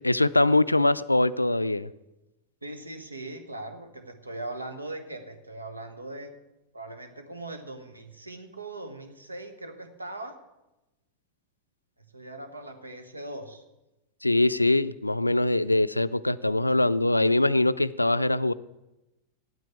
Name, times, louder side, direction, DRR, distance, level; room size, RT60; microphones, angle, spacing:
voice 1, 0.0-1.9 14.2-18.5, left 2 dB, 85° left, 16 dB, 0.3 m, -23 dB
voice 2, 2.6-6.3 6.7-10.3 12.1-13.6, right 2 dB, 80° right, 8 dB, 1.4 m, -40 dB
9.2 x 8.9 x 8.4 m, 0.98 s
figure-of-eight pair, 90°, 0 cm